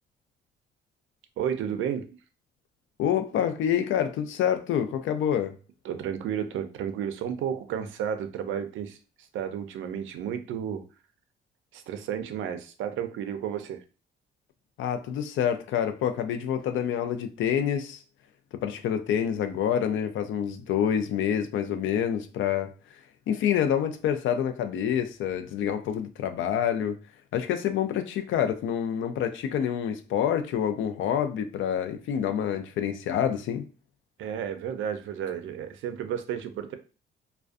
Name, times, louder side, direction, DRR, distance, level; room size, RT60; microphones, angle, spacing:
voice 1, 1.4-2.1 5.8-9.0 9.3-10.8 11.7-13.8 34.2-36.7, right 8 dB, 80° right, 0.4 m, -32 dB
voice 2, 3.0-5.5 14.8-18.0 18.5-22.7 23.3-27.0 27.3-33.7, left 9 dB, 75° left, 0.4 m, -27 dB
2.3 x 2.2 x 2.5 m
cardioid pair, 90°, 20 cm